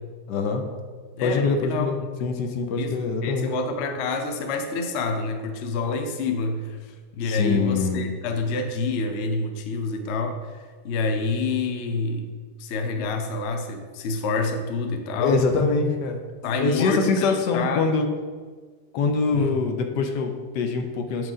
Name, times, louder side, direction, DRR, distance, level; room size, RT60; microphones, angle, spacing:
voice 1, 0.3-0.6 1.2-3.5 7.2-8.0 15.2-16.2 16.6-18.1 18.9-21.3, left 4 dB, 85° left, 5 dB, 1.3 m, -24 dB
voice 2, 1.2-2.0 2.8-12.3 12.6-15.4 16.4-18.0 19.3-19.6, left 3 dB, 60° left, 6 dB, 0.7 m, -28 dB
7.4 x 4.7 x 3.7 m, 1.5 s
omnidirectional pair, 1.8 m